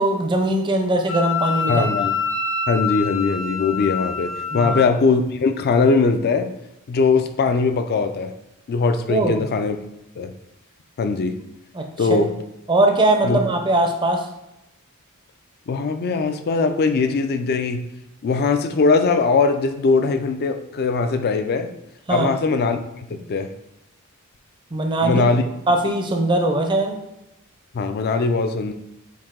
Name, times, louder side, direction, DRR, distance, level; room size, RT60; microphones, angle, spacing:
voice 1, 0.0-1.9 4.5-4.8 9.1-9.5 11.7-12.2 12.7-14.3 22.1-22.3 24.7-25.2 25.7-27.0, right 2 dB, 20° right, 4 dB, 0.5 m, -20 dB
Wind instrument woodwind instrument, 1.1-4.8, left 5 dB, 65° left, 1.4 m, -26 dB
voice 2, 1.7-2.1 2.7-6.5 6.9-8.3 8.7-9.8 10.2-10.3 11.0-11.4 12.0-12.3 13.2-13.4 15.7-17.8 18.2-21.7 22.1-23.5 25.0-25.4 27.7-28.7, left 4 dB, 45° left, 8 dB, 0.4 m, -20 dB
4.7 x 2.6 x 3.6 m, 0.90 s
head